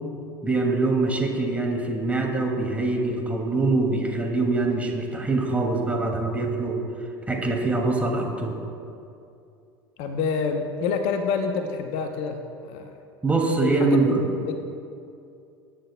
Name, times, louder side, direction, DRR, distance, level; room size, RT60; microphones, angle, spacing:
voice 1, 0.4-6.8 7.3-8.6 13.2-14.2, right 3 dB, 10° right, 0 dB, 2.4 m, -24 dB
voice 2, 10.0-12.9 13.6-14.6, left 5 dB, 55° left, 6 dB, 0.9 m, -28 dB
22.5 x 10.0 x 2.3 m, 2.5 s
figure-of-eight pair, 75°, 12 cm